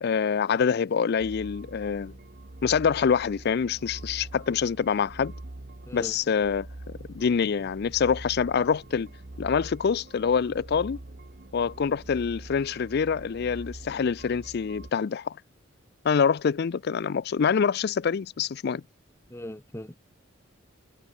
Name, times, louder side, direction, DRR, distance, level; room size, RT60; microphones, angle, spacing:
voice 1, 0.0-2.1 2.6-5.3 5.9-6.7 7.1-9.1 9.4-11.0 11.5-15.4 16.0-18.8, left 6 dB, 55° left, 0.4 m, -25 dB
sound 1, 1.2-14.9, right 1 dB, 55° right, 1.3 m, -44 dB
voice 2, 5.8-6.2 19.3-19.9, left 1 dB, 15° left, 1.7 m, -39 dB
head